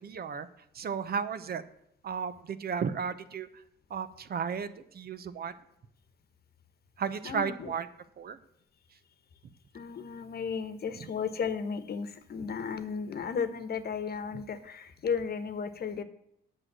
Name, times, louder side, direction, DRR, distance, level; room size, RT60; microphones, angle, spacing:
voice 1, 0.0-0.5 0.7-1.6 2.0-3.5 3.9-5.5 7.0-7.9 8.2-8.4, right 6 dB, 50° right, 12 dB, 0.8 m, -34 dB
voice 2, 7.2-7.7 9.7-16.0, left 6 dB, 50° left, 11 dB, 1.1 m, -34 dB
8.7 x 6.5 x 7.6 m, 0.78 s
cardioid pair, 90°, 20 cm